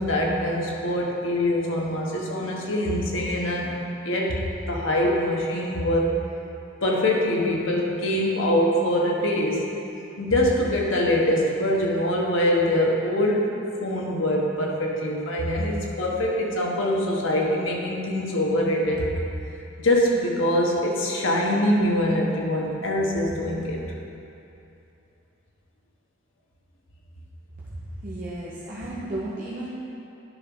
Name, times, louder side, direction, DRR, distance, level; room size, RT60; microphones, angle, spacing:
voice 1, 0.0-3.7 4.0-6.1 6.8-9.6 10.2-13.5 13.8-19.1 19.8-23.8, left 1 dB, 85° left, -2 dB, 1.2 m, -24 dB
voice 2, 27.8-29.7, right 1 dB, 45° right, -8 dB, 1.0 m, -34 dB
10.5 x 3.6 x 5.4 m, 2.8 s
head